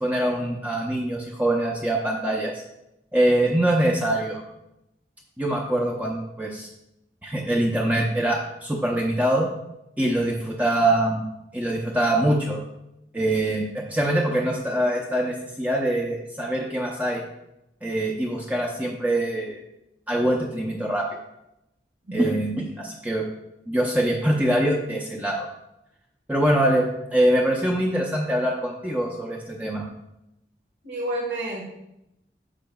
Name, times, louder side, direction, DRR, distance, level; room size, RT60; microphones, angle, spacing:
voice 1, 0.0-2.6 3.1-4.4 5.4-6.7 7.2-9.5 10.0-11.2 11.5-12.6 13.1-17.2 17.8-19.6 20.1-21.1 22.1-23.2 23.7-25.5 26.3-29.8, right 1 dB, 10° right, -2 dB, 0.6 m, -24 dB
voice 2, 22.1-22.4 30.8-31.7, right 1 dB, 75° right, -4 dB, 1.7 m, -30 dB
10.0 x 6.6 x 2.3 m, 0.87 s
head